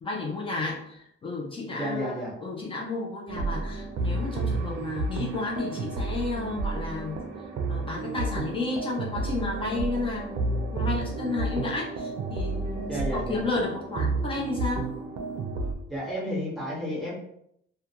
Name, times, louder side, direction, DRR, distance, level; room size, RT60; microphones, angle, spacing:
voice 1, 0.0-7.2 7.7-14.9, left 3 dB, 25° left, -3 dB, 0.4 m, -32 dB
voice 2, 1.8-2.3 12.9-13.4 15.9-17.2, equal, ahead, -7 dB, 1.0 m, -31 dB
sound 1, 3.3-15.7, right 3 dB, 60° right, 0.4 m, -31 dB
2.4 x 2.2 x 2.8 m, 0.73 s
cardioid pair, 165°, 21 cm